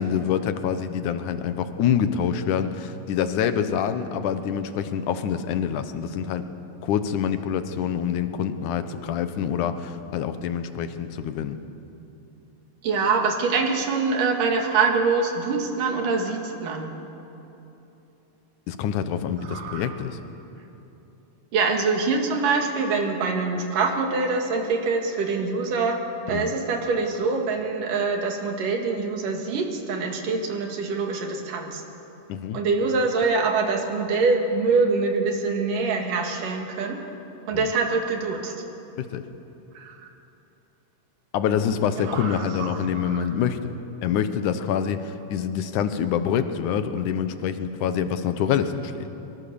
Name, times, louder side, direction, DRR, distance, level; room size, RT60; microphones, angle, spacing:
voice 1, 0.0-6.5 6.8-11.6 18.7-20.2 26.3-26.5 32.3-32.6 37.5-37.7 39.0-39.2 41.3-43.8 44.0-49.1, left 8 dB, 70° left, 10 dB, 2.4 m, -26 dB
voice 2, 12.8-16.9 19.4-19.9 21.5-26.0 26.3-31.8 32.5-37.0 37.5-38.6 39.8-40.0 42.0-43.3, right 4 dB, 70° right, 3 dB, 3.7 m, -24 dB
24.0 x 23.5 x 7.0 m, 2.9 s
omnidirectional pair, 3.9 m